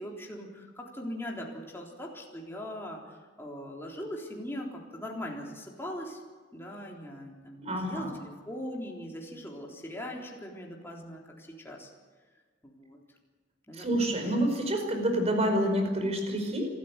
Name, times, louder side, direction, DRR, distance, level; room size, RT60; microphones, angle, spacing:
voice 1, 0.0-6.2 6.5-11.9 12.6-13.0 13.7-14.3, equal, 15° left, -2 dB, 3.8 m, -40 dB
voice 2, 7.6-8.1 13.7-16.7, right 1 dB, 35° right, 4 dB, 5.1 m, -28 dB
26.0 x 13.5 x 8.2 m, 1.4 s
head